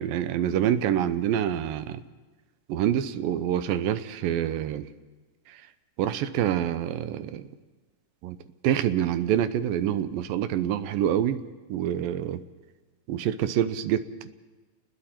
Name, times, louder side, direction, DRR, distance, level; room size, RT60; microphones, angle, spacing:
voice 1, 0.0-2.0 2.7-4.9 5.5-5.6 6.0-7.5 8.2-8.4 8.6-11.4 11.7-12.4 13.1-14.3, right 10 dB, 85° right, 13 dB, 2.5 m, -26 dB
29.5 x 20.5 x 4.3 m, 1.3 s
omnidirectional pair, 4.1 m